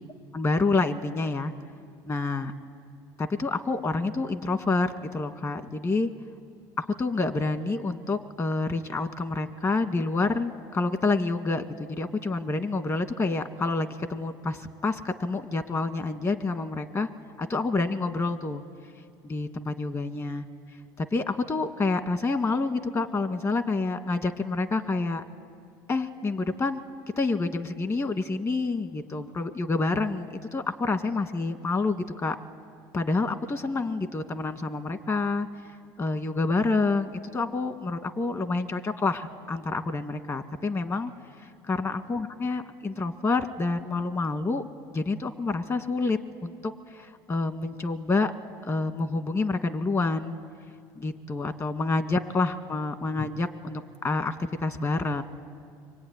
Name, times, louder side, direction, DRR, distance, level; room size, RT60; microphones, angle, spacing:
voice 1, 0.3-1.5 2.1-2.5 3.2-6.1 6.8-17.1 17.4-18.6 19.2-20.5 21.0-25.2 25.9-26.8 27.2-32.4 32.9-35.7 36.0-41.1 41.7-48.3 48.6-50.4 51.0-55.2, left 3 dB, 30° left, 8 dB, 1.9 m, -28 dB
25.5 x 22.0 x 9.7 m, 2.2 s
supercardioid pair, 90°, 10 cm